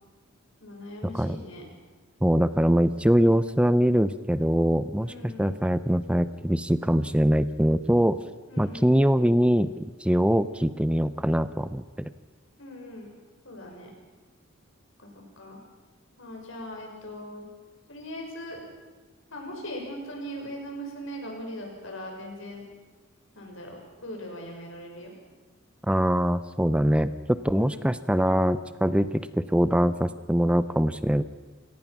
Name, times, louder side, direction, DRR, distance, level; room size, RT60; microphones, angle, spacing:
voice 1, 0.6-1.6 5.0-5.6 8.5-8.9 12.6-13.1 13.4-13.9 15.0-15.1 15.4-15.6 16.2-17.5 17.9-18.6 19.3-22.6 23.3-25.1 27.6-27.9, equal, 70° left, 1 dB, 6.2 m, -40 dB
voice 2, 2.2-8.2 8.6-12.1 25.9-31.2, equal, 5° right, 13 dB, 0.5 m, -23 dB
27.5 x 18.0 x 6.0 m, 1.3 s
head